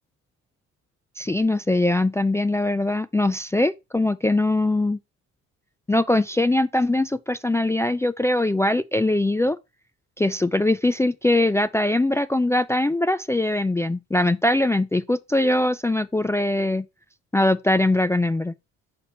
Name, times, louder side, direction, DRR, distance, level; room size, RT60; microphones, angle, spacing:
voice 1, 1.2-5.0 5.9-9.6 10.2-16.9 17.3-18.5, left 2 dB, 10° left, 0.3 m, -22 dB
6.9 x 4.1 x 4.2 m
cardioid pair, 90°, 30 cm